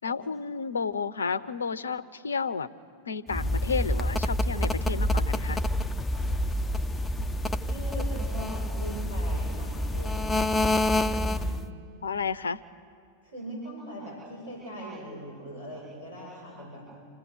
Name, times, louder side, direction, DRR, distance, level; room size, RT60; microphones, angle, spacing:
voice 1, 0.0-2.7 3.1-5.6 12.0-12.6, left 5 dB, 70° left, 18 dB, 0.7 m, -31 dB
sound 1, 3.3-11.7, left 1 dB, 10° left, 0.7 m, -27 dB
voice 2, 7.6-10.7 11.0-11.5 13.2-16.9, equal, 75° right, -7 dB, 7.7 m, -41 dB
28.0 x 17.0 x 6.5 m, 2.3 s
figure-of-eight pair, 90°, 0 cm